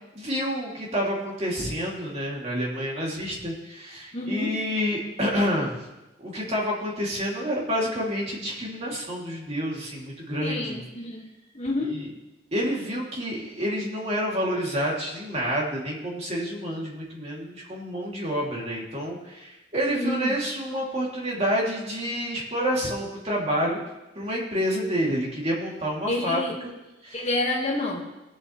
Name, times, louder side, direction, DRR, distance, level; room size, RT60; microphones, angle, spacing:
voice 1, 0.1-5.8 6.2-10.8 11.9-12.1 12.5-23.8 24.1-26.7 27.0-27.3, equal, 35° right, -3 dB, 2.5 m, -28 dB
voice 2, 4.1-4.5 10.4-11.3 11.5-12.0 19.9-20.4 26.1-26.5 27.1-28.1, left 1 dB, 35° left, 0 dB, 1.6 m, -28 dB
21.0 x 7.3 x 3.1 m, 1.0 s
head